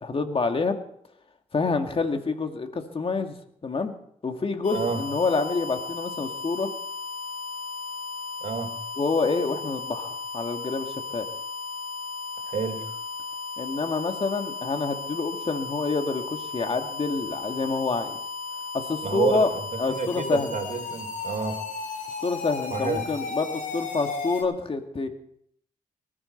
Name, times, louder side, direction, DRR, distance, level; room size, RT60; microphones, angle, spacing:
voice 1, 0.0-0.8 1.5-3.3 3.6-3.9 4.2-6.7 9.0-11.3 13.6-18.2 18.7-19.5 19.8-20.5 22.2-25.1, left 4 dB, 40° left, 6 dB, 2.1 m, -27 dB
sound 1, 4.6-24.4, left 4 dB, 70° left, 4.4 m, -35 dB
voice 2, 8.4-8.7 12.5-13.0 19.0-19.6 19.9-21.6 22.7-23.0, right 5 dB, 60° right, 5 dB, 3.0 m, -29 dB
19.5 x 14.0 x 4.5 m, 0.68 s
cardioid pair, 65°, 14 cm